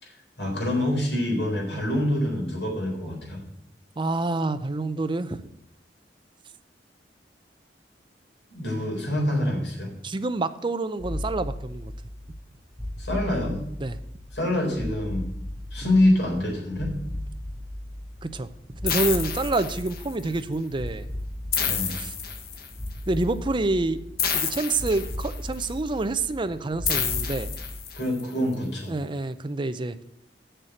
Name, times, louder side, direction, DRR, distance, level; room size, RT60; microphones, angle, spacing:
voice 1, 0.0-3.4 8.5-9.9 13.0-13.6 14.3-15.3 15.7-16.9 21.7-21.9 27.9-29.0, left 1 dB, 75° left, -1 dB, 4.0 m, -26 dB
voice 2, 4.0-5.4 10.0-11.9 13.8-13.9 15.8-15.9 18.2-21.1 21.9-22.1 23.1-24.0 24.3-27.5 28.9-30.0, right 2 dB, 30° right, 10 dB, 0.6 m, -27 dB
sound 1, 11.0-27.7, left 1 dB, 5° left, 0.9 m, -37 dB
sound 2, 18.9-20.2 21.5-22.9 24.2-25.6 26.9-28.2, left 7 dB, 60° left, 1.2 m, -29 dB
7.4 x 6.8 x 7.6 m, 0.77 s
head